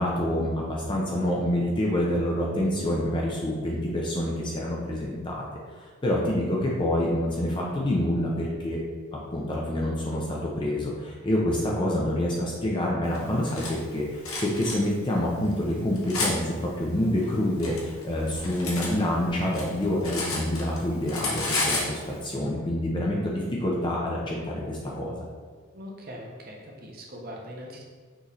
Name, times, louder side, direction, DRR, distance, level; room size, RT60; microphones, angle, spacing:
voice 1, 0.0-5.5 6.0-8.8 9.3-25.2, left 1 dB, 20° left, -3 dB, 0.5 m, -27 dB
Cutlery silverware, 13.1-13.7 14.2-14.8 15.4-16.3 17.2-18.9 19.2-20.8 21.1-21.9, left 3 dB, 75° left, 1.0 m, -31 dB
voice 2, 25.7-27.8, equal, 45° right, -1 dB, 0.7 m, -41 dB
6.0 x 3.1 x 2.7 m, 1.5 s
head